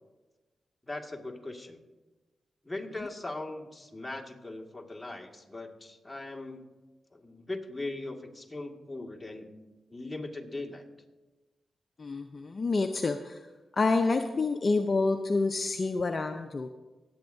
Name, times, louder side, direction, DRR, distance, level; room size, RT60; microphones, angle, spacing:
voice 1, 0.9-1.8 2.6-6.6 7.1-9.6 9.9-10.8, left 2 dB, 15° left, 1 dB, 2.0 m, -39 dB
voice 2, 12.0-13.5 13.7-16.7, left 3 dB, 50° left, 6 dB, 0.6 m, -28 dB
21.0 x 8.7 x 2.7 m, 1.2 s
supercardioid pair, 50°, 0 cm